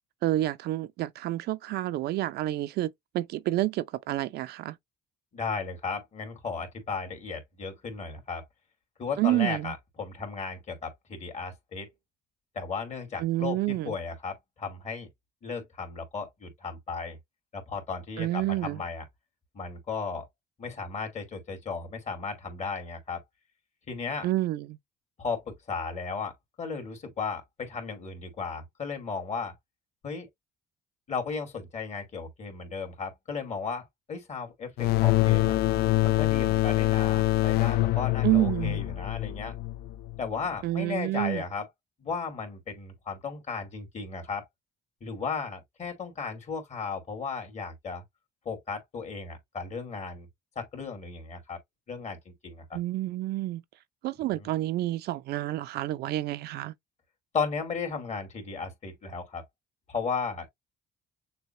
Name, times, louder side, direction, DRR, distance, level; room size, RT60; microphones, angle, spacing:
voice 1, 0.2-4.8 9.2-9.7 13.2-13.9 18.2-18.8 24.2-24.8 38.2-38.8 40.6-41.4 52.7-53.6 54.0-56.7, right 16 dB, 70° right, 0.5 m, -29 dB
voice 2, 5.3-8.4 9.0-11.9 12.5-15.1 15.4-17.2 17.5-19.0 19.5-20.3 20.6-23.2 23.9-24.3 25.2-29.5 30.0-30.3 31.1-35.6 36.0-39.5 40.2-41.7 42.0-44.4 45.0-48.0 48.4-50.3 50.6-51.6 51.9-52.8 54.3-54.5 57.3-59.4 59.9-60.5, left 5 dB, 40° left, 2.4 m, -35 dB
sound 1, 34.8-40.2, left 17 dB, 70° left, 0.4 m, -25 dB
6.6 x 2.2 x 2.7 m
cardioid pair, 110°, 17 cm